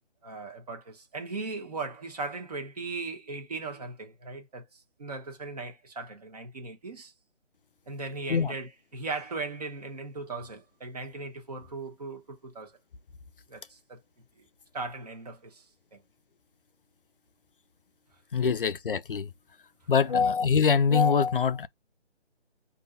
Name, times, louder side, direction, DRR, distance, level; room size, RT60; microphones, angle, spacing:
voice 1, 0.2-7.1 7.9-12.7 13.5-14.0 14.7-15.6 15.9-16.0 20.0-20.2, right 3 dB, 35° right, 1.3 m, -38 dB
voice 2, 18.3-19.3 19.9-21.7, left 6 dB, 55° left, 0.4 m, -24 dB
5.3 x 2.7 x 2.5 m
hypercardioid pair, 170°, 34 cm